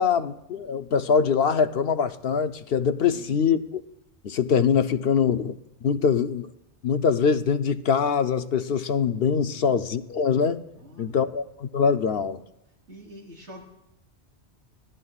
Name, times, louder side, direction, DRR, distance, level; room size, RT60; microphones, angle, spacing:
voice 1, 0.0-3.6 4.2-5.6 5.8-6.5 6.8-10.6 11.0-12.4, left 6 dB, 65° left, 0.8 m, -23 dB
voice 2, 3.1-3.4 9.5-9.8 10.8-11.4 12.9-13.6, equal, 85° right, 4.0 m, -45 dB
25.0 x 17.0 x 2.4 m
omnidirectional pair, 1.2 m